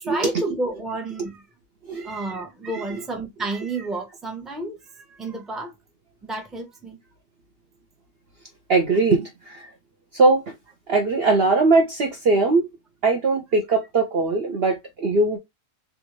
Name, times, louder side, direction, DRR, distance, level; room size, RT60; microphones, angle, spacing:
voice 1, 0.0-1.5 1.9-5.7 6.2-7.0, right 2 dB, ahead, 0.3 m, -31 dB
voice 2, 8.7-9.7 10.1-10.5 10.9-12.7 13.0-15.4, right 3 dB, 65° right, 0.6 m, -20 dB
3.5 x 2.4 x 3.0 m
omnidirectional pair, 1.7 m